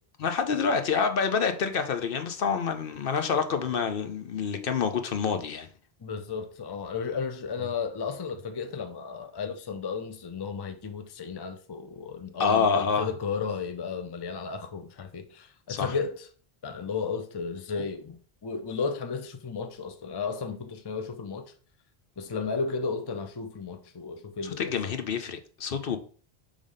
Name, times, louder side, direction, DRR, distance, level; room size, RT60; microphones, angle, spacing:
voice 1, 0.2-5.7 12.4-13.1 15.7-16.0 24.6-26.0, left 6 dB, 65° left, 0.8 m, -27 dB
voice 2, 6.0-16.3 16.6-21.5 22.2-24.7, left 5 dB, 30° left, 0.5 m, -34 dB
5.0 x 3.5 x 5.5 m
omnidirectional pair, 1.0 m